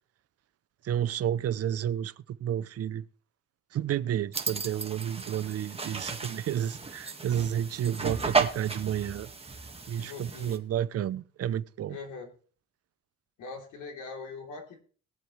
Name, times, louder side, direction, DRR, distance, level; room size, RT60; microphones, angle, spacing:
voice 1, 0.8-3.0 3.7-9.3 9.9-12.0, right 10 dB, 55° right, 0.6 m, -31 dB
sound 1, 4.3-10.6, right 4 dB, 20° right, 1.6 m, -34 dB
voice 2, 10.0-10.6 11.9-12.3 13.4-14.8, left 4 dB, 90° left, 3.5 m, -42 dB
20.0 x 7.6 x 3.2 m
cardioid pair, 90°, 30 cm